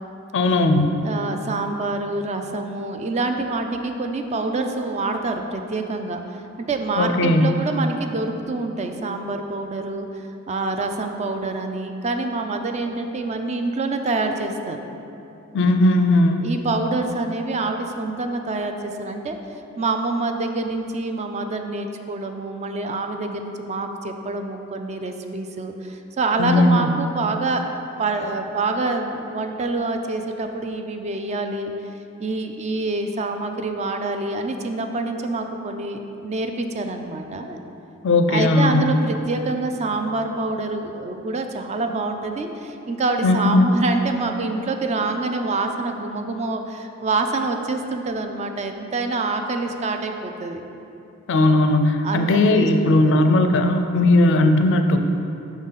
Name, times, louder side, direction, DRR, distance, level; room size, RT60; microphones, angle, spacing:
voice 1, 0.3-1.0 7.0-7.5 15.5-16.5 26.4-26.9 38.0-39.0 43.2-43.8 51.3-55.0, left 2 dB, 65° left, 6 dB, 0.4 m, -17 dB
voice 2, 1.0-6.2 6.7-14.8 16.4-19.4 19.8-31.7 32.2-37.6 38.3-50.6 52.0-53.2 54.0-54.1, right 3 dB, 35° right, 5 dB, 0.4 m, -26 dB
6.1 x 3.9 x 5.5 m, 2.9 s
head